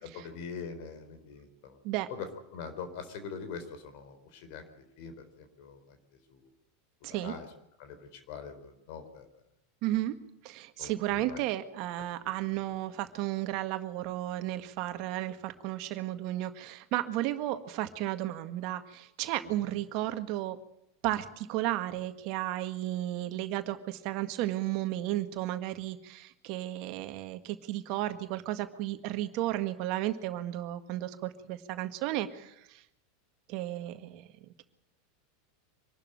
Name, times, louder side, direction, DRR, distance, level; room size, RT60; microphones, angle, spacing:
voice 1, 0.0-1.8 2.1-6.5 7.1-7.5 7.8-9.3 10.8-11.4 12.2-12.3 19.6-19.7, left 5 dB, 60° left, 8 dB, 4.1 m, -43 dB
voice 2, 9.8-10.2 10.4-20.6 21.0-32.5 33.5-34.2, right 14 dB, 55° right, 9 dB, 1.8 m, -33 dB
25.5 x 12.5 x 9.0 m, 0.83 s
hypercardioid pair, 90°, 0 cm